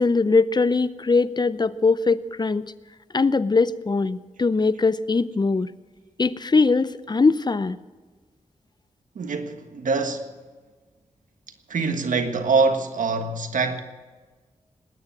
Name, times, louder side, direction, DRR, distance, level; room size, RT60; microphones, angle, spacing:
voice 1, 0.0-2.6 3.1-5.7 6.2-7.8, left 4 dB, 35° left, 0.6 m, -21 dB
voice 2, 9.1-10.3 11.7-13.8, right 4 dB, 85° right, 1.5 m, -24 dB
19.5 x 9.7 x 7.4 m
cardioid pair, 75°, 13 cm